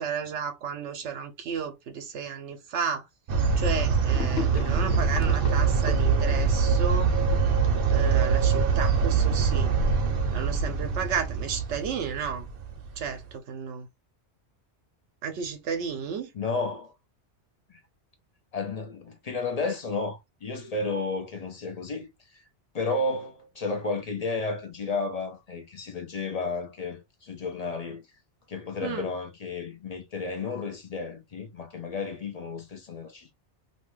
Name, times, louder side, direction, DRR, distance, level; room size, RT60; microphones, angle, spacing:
voice 1, 0.0-3.1 3.6-7.1 7.9-9.7 10.3-12.5 13.0-13.9 15.2-16.3 28.8-29.1, right 6 dB, 85° right, 0.9 m, -33 dB
sound 1, 3.3-13.1, right 5 dB, 60° right, 0.8 m, -24 dB
Gurgling / Sink (filling or washing), 4.1-8.6, left 7 dB, 85° left, 0.9 m, -38 dB
voice 2, 16.3-16.9 17.7-17.8 18.5-22.4 22.7-28.0 28.5-33.3, left 3 dB, 45° left, 0.6 m, -32 dB
2.6 x 2.2 x 3.1 m
omnidirectional pair, 1.2 m